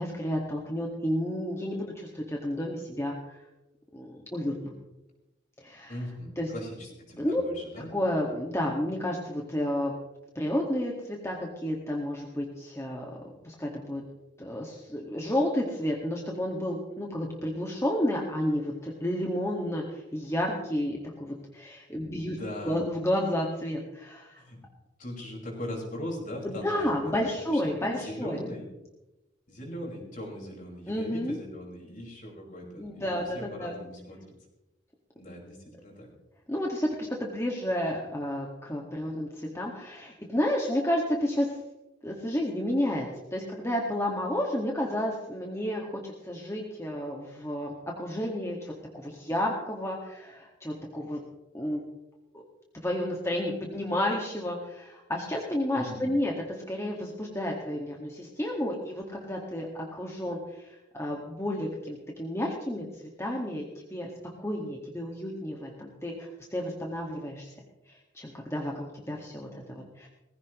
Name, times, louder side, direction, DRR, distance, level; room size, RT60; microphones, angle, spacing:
voice 1, 0.0-3.4 3.9-4.7 5.6-6.0 6.4-6.5 7.2-7.4 7.9-9.9 10.4-13.1 13.4-14.0 14.4-22.4 22.6-24.4 26.4-28.4 30.9-31.4 32.8-33.7 36.5-41.6 42.0-51.2 51.5-51.8 52.8-56.3 56.7-64.1 64.4-67.5 68.1-70.1, left 1 dB, 15° left, -1 dB, 1.9 m, -31 dB
voice 2, 5.9-7.9 22.0-22.9 24.3-24.6 25.0-26.9 27.2-28.7 29.5-34.2 35.1-36.1 55.8-56.1, left 1 dB, 50° left, -2 dB, 5.5 m, -40 dB
19.5 x 16.0 x 3.2 m, 0.98 s
head